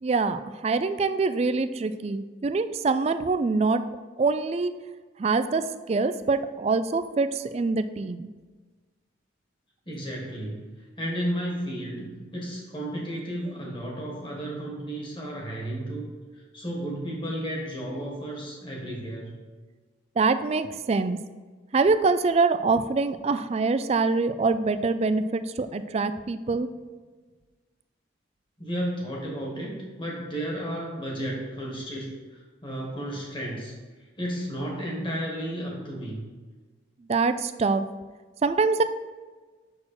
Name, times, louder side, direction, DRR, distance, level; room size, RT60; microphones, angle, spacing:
voice 1, 0.0-3.8 4.2-4.7 5.2-8.3 20.2-21.2 21.7-26.7 37.1-37.9 38.4-38.8, right 4 dB, 35° right, 11 dB, 0.3 m, -24 dB
voice 2, 9.9-10.6 11.0-16.1 16.5-19.4 28.6-33.7 34.2-36.3, equal, 25° left, -2 dB, 1.7 m, -33 dB
6.5 x 6.0 x 4.4 m, 1.4 s
head